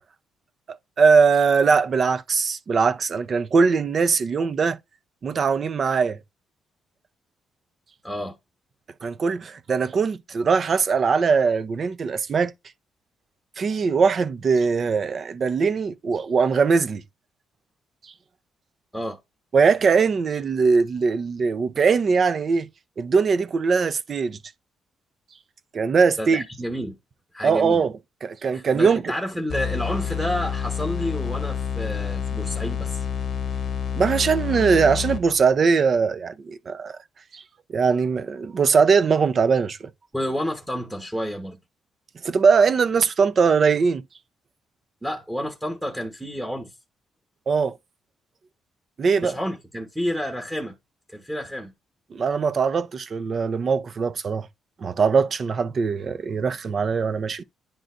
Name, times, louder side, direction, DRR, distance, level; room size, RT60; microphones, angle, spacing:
voice 1, 1.0-4.8 5.2-6.2 9.0-12.5 13.6-17.0 18.0-18.1 19.5-22.7 23.0-24.4 25.7-26.4 27.4-27.9 28.2-29.0 33.9-37.0 37.3-37.4 37.7-39.8 42.2-44.0 47.5-47.7 49.0-49.4 52.1-54.5 54.8-57.4, right 5 dB, 45° right, 0.6 m, -21 dB
voice 2, 8.0-8.3 18.9-19.2 26.2-27.0 27.3-27.8 28.5-33.0 40.1-41.6 45.0-46.7 49.2-50.7 51.1-51.7, equal, 5° right, 1.3 m, -30 dB
sound 1, 29.5-35.5, left 8 dB, 55° left, 0.8 m, -28 dB
10.0 x 3.8 x 2.6 m
cardioid pair, 90°, 0 cm